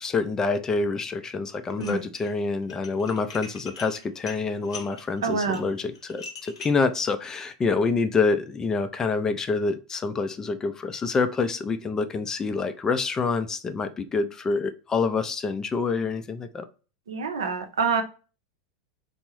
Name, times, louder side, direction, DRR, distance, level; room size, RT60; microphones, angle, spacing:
voice 1, 0.0-16.7, left 4 dB, 20° left, 10 dB, 0.4 m, -27 dB
Dishes pots and pans, 1.7-2.3 2.6-6.9, left 4 dB, 85° left, 0.7 m, -42 dB
voice 2, 5.2-5.6 17.1-18.0, right 5 dB, 85° right, 6 dB, 0.6 m, -26 dB
3.5 x 2.0 x 3.0 m, 0.35 s
hypercardioid pair, 100°, 3 cm